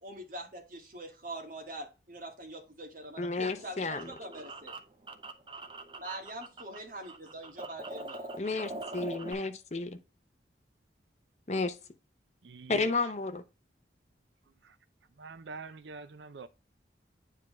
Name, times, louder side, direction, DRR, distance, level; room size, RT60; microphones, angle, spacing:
voice 1, 0.0-4.7 6.0-8.3, right 1 dB, 45° right, 1.8 m, -44 dB
voice 2, 3.2-4.1 8.4-10.0 11.5-11.8 12.7-13.4, left 3 dB, 40° left, 0.8 m, -32 dB
sound 1, 3.4-6.8 7.0-9.3, right 2 dB, 30° right, 0.8 m, -43 dB
voice 3, 12.4-12.9 14.6-14.8 15.2-16.5, right 4 dB, 80° right, 0.5 m, -44 dB
9.2 x 3.7 x 3.2 m
head